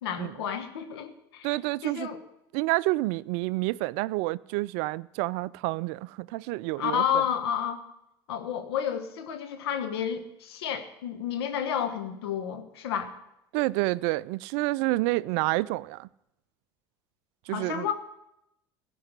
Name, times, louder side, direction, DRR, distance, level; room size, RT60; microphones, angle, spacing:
voice 1, 0.0-1.5 1.8-2.2 6.8-7.8 8.3-13.1 17.5-17.9, left 8 dB, 80° left, 1.3 m, -31 dB
voice 2, 1.4-2.1 2.5-7.2 13.5-16.1 17.5-17.9, right 20 dB, 65° right, 0.4 m, -29 dB
15.5 x 5.4 x 8.1 m
hypercardioid pair, 75°, 13 cm